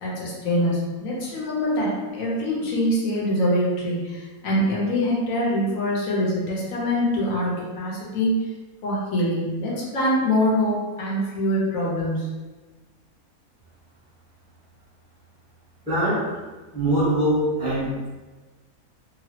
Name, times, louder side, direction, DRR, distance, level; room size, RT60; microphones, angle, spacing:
voice 1, 0.0-8.3 8.8-12.3, left 1 dB, 65° left, -5 dB, 1.2 m, -24 dB
voice 2, 15.9-16.4 16.7-18.1, right 1 dB, 5° right, -13 dB, 0.8 m, -23 dB
3.0 x 2.3 x 2.8 m, 1.3 s
omnidirectional pair, 1.6 m